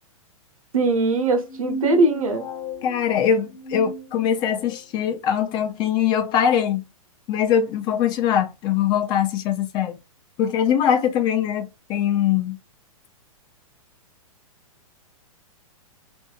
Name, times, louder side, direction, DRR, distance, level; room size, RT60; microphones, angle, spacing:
voice 1, 0.7-2.5, right 2 dB, 70° right, 0.8 m, -20 dB
sound 1, 1.4-4.8, right 1 dB, 60° left, 1.0 m, -35 dB
voice 2, 2.8-6.8 7.3-10.0 10.4-12.6, left 9 dB, 25° left, 0.3 m, -22 dB
2.6 x 2.6 x 2.3 m
figure-of-eight pair, 110°, 18 cm